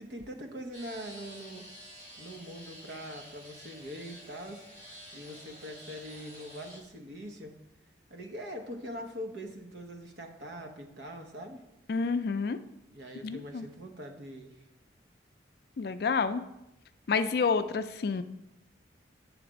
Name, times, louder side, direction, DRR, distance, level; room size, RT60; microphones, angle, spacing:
voice 1, 0.0-1.7 2.2-4.6 5.1-7.6 8.1-11.6 12.9-14.5, equal, 70° right, 4 dB, 0.9 m, -43 dB
sound 1, 0.7-6.8, equal, 35° right, 1.9 m, -50 dB
voice 2, 11.9-12.6 13.2-13.7 15.8-16.4 17.1-18.2, left 5 dB, 55° left, 11 dB, 0.4 m, -29 dB
7.9 x 3.3 x 6.1 m, 0.88 s
head